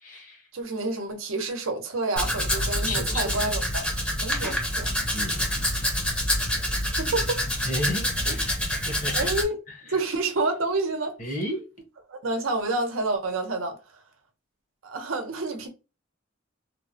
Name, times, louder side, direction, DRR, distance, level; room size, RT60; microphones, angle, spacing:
voice 1, 0.0-0.4 2.8-3.3 5.1-5.4 7.6-8.5 8.9-9.3 11.2-11.7, left 1 dB, 40° left, 0.9 m, -32 dB
voice 2, 0.5-3.9 4.2-5.0 6.9-7.4 8.3-8.4 9.1-9.6 9.8-11.2 12.1-13.8 14.8-15.7, right 2 dB, 90° right, 0.7 m, -29 dB
Domestic sounds home sounds, 2.2-9.4, equal, 5° left, 0.6 m, -27 dB
3.1 x 2.1 x 2.6 m
head